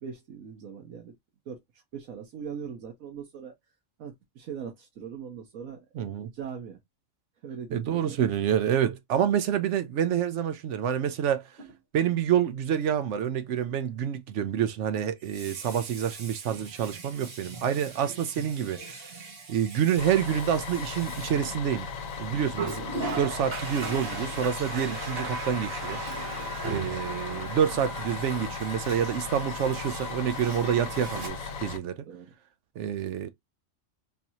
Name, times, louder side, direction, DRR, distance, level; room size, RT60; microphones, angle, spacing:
voice 1, 0.0-1.1 1.5-1.6 1.9-3.5 4.0-6.8 7.4-8.2 32.1-32.3, right 7 dB, 85° right, 1.3 m, -40 dB
voice 2, 5.9-6.3 7.7-11.5 11.9-18.8 19.5-21.9 22.2-22.8 23.2-26.0 26.6-32.1 32.8-33.3, right 9 dB, 70° right, 0.8 m, -27 dB
Water tap faucet, 11.6-11.7 15.1-22.0 22.5-31.3, right 3 dB, 50° right, 1.2 m, -39 dB
Bus, 20.0-31.8, left 5 dB, 75° left, 1.1 m, -37 dB
3.9 x 2.7 x 2.8 m
omnidirectional pair, 1.4 m